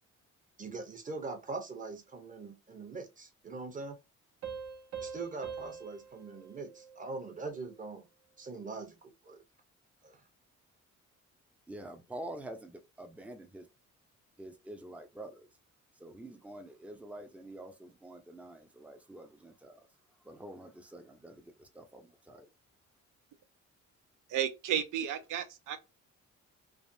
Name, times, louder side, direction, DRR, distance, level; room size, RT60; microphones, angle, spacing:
voice 1, 0.6-4.0 5.0-8.1 8.4-9.0 9.2-9.4 10.0-10.2, right 3 dB, 25° right, 0.9 m, -42 dB
Piano, 4.4-7.7, right 6 dB, 65° right, 0.9 m, -44 dB
voice 2, 11.7-13.7 14.4-15.5 16.0-19.9 20.2-22.5, right 1 dB, 5° right, 0.5 m, -47 dB
voice 3, 24.3-25.8, right 10 dB, 85° right, 0.6 m, -33 dB
3.4 x 2.0 x 2.6 m
cardioid pair, 90°, 30 cm